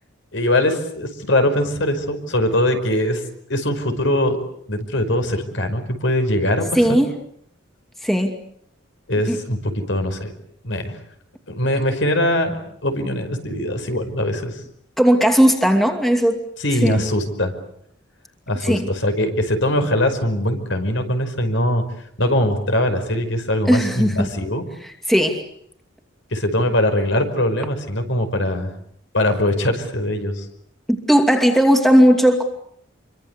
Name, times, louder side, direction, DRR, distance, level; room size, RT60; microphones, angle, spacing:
voice 1, 0.3-3.2 3.5-4.4 4.7-7.0 9.1-10.3 10.6-11.0 11.5-14.6 16.6-17.5 18.5-21.8 22.2-24.6 26.3-28.7 29.1-30.5, left 1 dB, 70° left, 7 dB, 5.2 m, -21 dB
voice 2, 6.7-7.1 8.0-8.3 9.3-9.4 15.0-16.4 16.8-17.0 18.6-18.9 23.7-24.3 24.8-25.4 30.9-32.4, equal, ahead, 4 dB, 2.6 m, -16 dB
28.5 x 24.0 x 8.3 m, 0.69 s
head